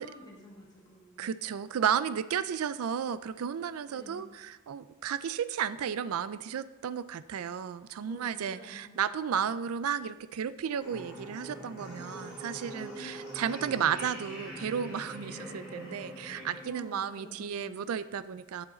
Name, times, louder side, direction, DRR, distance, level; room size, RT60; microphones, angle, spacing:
voice 1, 0.0-1.3 3.9-4.3 8.0-9.0 11.9-12.9 15.2-15.6 16.6-17.9, equal, 20° left, -3 dB, 2.2 m, -51 dB
voice 2, 1.2-18.7, right 8 dB, 80° right, 15 dB, 0.4 m, -33 dB
sound 1, 10.8-16.6, right 1 dB, 5° right, 2.9 m, -43 dB
11.0 x 7.2 x 3.8 m, 1.1 s
head